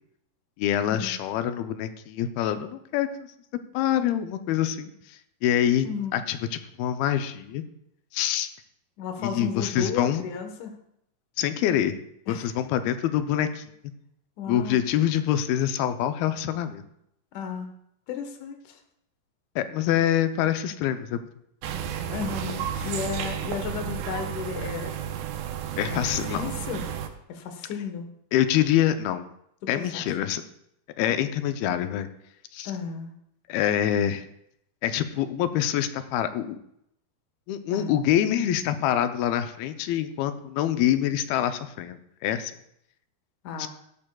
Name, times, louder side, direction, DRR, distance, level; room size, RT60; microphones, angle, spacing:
voice 1, 0.6-3.3 3.7-5.9 6.1-6.4 6.8-7.6 8.1-8.5 9.2-10.2 11.4-12.0 12.3-13.6 14.5-16.8 19.6-21.3 25.8-26.5 28.3-29.3 29.7-30.4 31.0-32.1 32.5-32.7 33.5-34.3 34.8-36.6 37.5-42.5 43.6-43.7, left 11 dB, 85° left, 9 dB, 2.6 m, -25 dB
voice 2, 5.8-6.2 9.0-10.7 12.3-12.5 14.4-14.8 17.3-17.7 18.1-18.8 22.1-24.9 25.8-26.8 27.3-28.1 29.7-30.1 32.6-33.1 37.7-37.9 43.4-43.7, left 6 dB, 65° left, 5 dB, 2.4 m, -34 dB
sound 1, 21.6-27.1, right 9 dB, 90° right, 2.7 m, -32 dB
16.5 x 12.5 x 2.3 m, 0.76 s
omnidirectional pair, 4.3 m